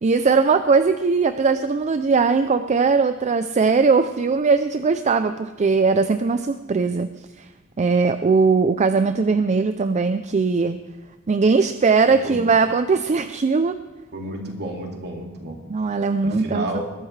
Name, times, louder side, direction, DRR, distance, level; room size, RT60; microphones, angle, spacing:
voice 1, 0.0-7.1 7.4-7.5 7.8-10.8 11.3-13.7 15.7-16.8, right 4 dB, 30° right, 10 dB, 0.4 m, -19 dB
voice 2, 12.1-12.4 14.1-15.6 16.2-16.9, right 1 dB, 50° right, 1 dB, 2.3 m, -31 dB
21.0 x 12.5 x 3.3 m, 1.2 s
head